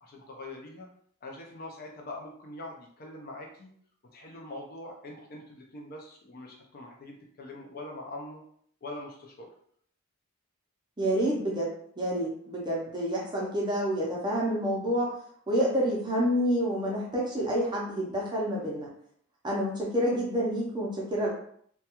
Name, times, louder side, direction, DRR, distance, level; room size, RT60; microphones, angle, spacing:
voice 1, 0.0-0.9 1.2-3.7 4.1-8.4 8.8-9.5, left 2 dB, 40° left, 0 dB, 0.4 m, -43 dB
voice 2, 11.0-11.7 12.0-15.1 15.5-18.9 19.4-21.3, equal, 20° right, -3 dB, 0.5 m, -28 dB
2.3 x 2.2 x 2.8 m, 0.63 s
head